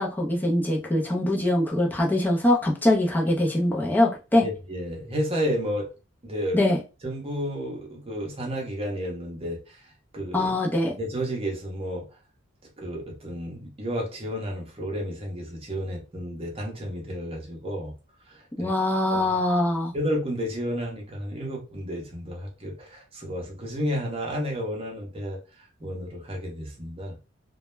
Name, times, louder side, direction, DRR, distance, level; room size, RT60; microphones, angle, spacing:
voice 1, 0.0-4.4 6.5-6.8 10.3-10.9 18.6-19.9, left 1 dB, 10° left, 0.5 m, -23 dB
voice 2, 4.4-5.9 6.2-6.6 7.0-10.5 11.0-12.1 12.8-18.0 18.3-18.7 19.1-19.2 19.9-27.2, equal, 30° right, 0.7 m, -32 dB
2.2 x 2.0 x 3.1 m
head